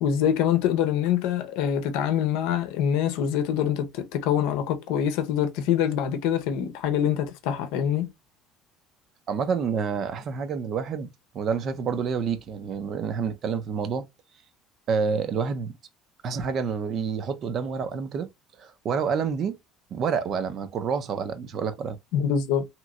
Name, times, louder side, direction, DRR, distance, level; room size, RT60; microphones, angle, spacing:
voice 1, 0.0-8.1 22.1-22.7, left 9 dB, 80° left, 0.7 m, -25 dB
voice 2, 9.3-11.1 11.3-14.1 14.9-15.8 16.2-18.3 18.6-19.6 19.9-22.0, right 6 dB, 40° right, 0.5 m, -28 dB
3.0 x 2.9 x 2.4 m
cardioid pair, 160°, 0 cm